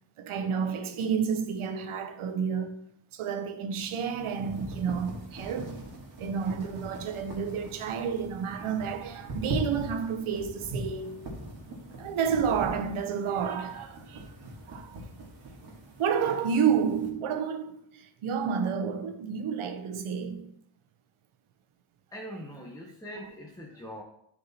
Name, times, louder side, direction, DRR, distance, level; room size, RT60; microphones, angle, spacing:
voice 1, 0.2-2.9 3.1-5.9 6.2-11.4 12.0-14.2 14.7-15.0 16.0-20.5, right 7 dB, 85° right, 0.9 m, -30 dB
sound 1, 3.8-17.1, right 1 dB, 50° right, 2.2 m, -41 dB
voice 2, 22.1-24.0, equal, 5° left, 0.9 m, -42 dB
9.8 x 4.5 x 4.2 m
wide cardioid pair, 120°, 49 cm